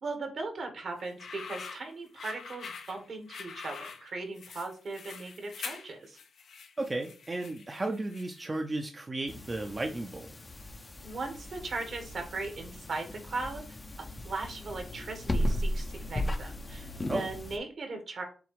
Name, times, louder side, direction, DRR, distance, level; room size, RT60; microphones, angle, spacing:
voice 1, 0.0-6.2 11.0-18.2, right 3 dB, 65° right, 4 dB, 1.4 m, -38 dB
sound 1, 1.0-8.6, left 5 dB, 75° left, 0.7 m, -45 dB
voice 2, 6.8-10.3 17.1-17.3, right 2 dB, 30° right, 3 dB, 0.6 m, -34 dB
sound 2, 9.3-17.6, left 1 dB, 30° left, 0.6 m, -36 dB
6.9 x 2.3 x 3.2 m, 0.37 s
cardioid pair, 75°, 0 cm